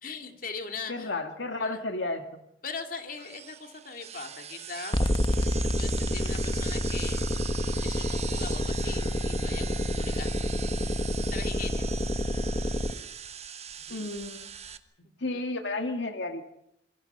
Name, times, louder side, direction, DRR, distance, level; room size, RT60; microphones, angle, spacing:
voice 1, 0.0-1.1 1.6-1.8 2.6-5.0 5.4-7.4 7.8-10.5 11.3-11.9 13.8-14.1 15.0-15.5, left 5 dB, 50° left, 5 dB, 2.6 m, -41 dB
voice 2, 0.9-2.2 13.9-14.5 15.2-16.4, left 2 dB, 80° left, 5 dB, 2.1 m, -32 dB
sound 1, 3.2-14.8, right 8 dB, 35° right, 1.2 m, -40 dB
sound 2, 4.9-12.9, left 1 dB, 25° left, 1.1 m, -28 dB
27.0 x 23.0 x 5.6 m, 0.77 s
head